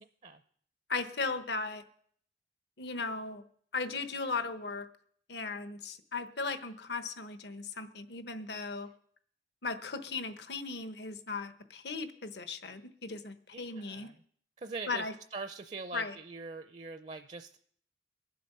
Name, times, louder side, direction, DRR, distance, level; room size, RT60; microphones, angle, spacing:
voice 1, 0.9-1.8 2.8-3.4 3.7-4.9 5.3-8.9 9.6-14.1 14.9-15.1 15.9-16.1, left 4 dB, 75° left, 10 dB, 1.0 m, -37 dB
voice 2, 13.5-14.2 14.6-17.6, right 4 dB, 40° right, 9 dB, 0.5 m, -43 dB
22.5 x 7.7 x 5.5 m, 0.63 s
head